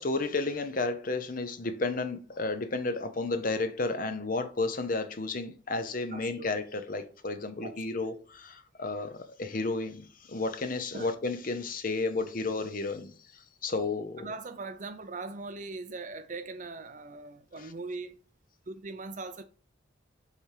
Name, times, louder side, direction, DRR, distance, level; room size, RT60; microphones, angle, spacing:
voice 1, 0.0-13.1 13.6-14.3, left 3 dB, 45° left, 0.7 m, -32 dB
voice 2, 6.1-6.5 7.6-8.0 10.9-11.1 14.2-18.2 18.7-19.4, right 3 dB, 40° right, 0.5 m, -40 dB
7.3 x 3.3 x 4.8 m
head